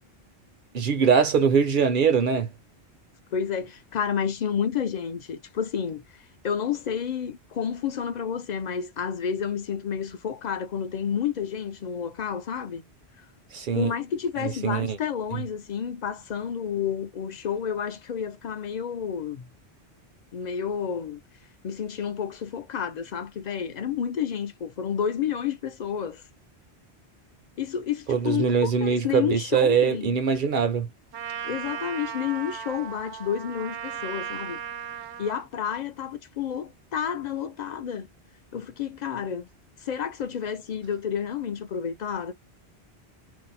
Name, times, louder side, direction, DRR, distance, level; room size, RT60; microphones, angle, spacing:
voice 1, 0.7-2.5 13.5-13.9 14.4-15.0 15.3-15.4 28.1-30.9, right 6 dB, 60° right, 0.6 m, -22 dB
voice 2, 3.3-12.8 13.7-19.5 20.3-21.2 21.6-26.2 27.6-30.2 31.4-34.6 35.2-38.1 38.5-39.5 39.8-42.3, left 8 dB, 55° left, 0.5 m, -30 dB
Trumpet, 31.1-35.5, right 8 dB, 90° right, 0.9 m, -36 dB
2.6 x 2.0 x 4.0 m
omnidirectional pair, 1.1 m